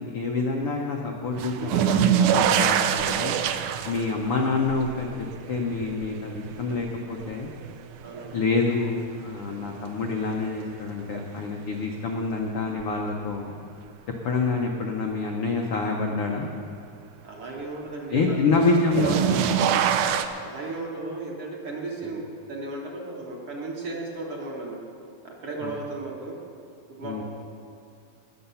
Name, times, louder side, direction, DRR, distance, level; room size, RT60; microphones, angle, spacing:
voice 1, 0.0-3.4 3.8-7.5 8.3-13.6 14.2-16.5 18.1-19.7 25.6-25.7 27.0-27.2, left 3 dB, 85° left, 0 dB, 1.2 m, -27 dB
sound 1, 1.4-8.4 8.8-9.5 11.1-11.2 12.8-12.9 18.6-20.3, right 9 dB, 80° right, 2.0 m, -25 dB
voice 2, 8.0-8.4 17.2-18.8 20.4-24.8 25.2-26.4 26.9-27.2, right 2 dB, 55° right, -2 dB, 1.9 m, -35 dB
20.0 x 7.0 x 5.6 m, 2.5 s
omnidirectional pair, 3.8 m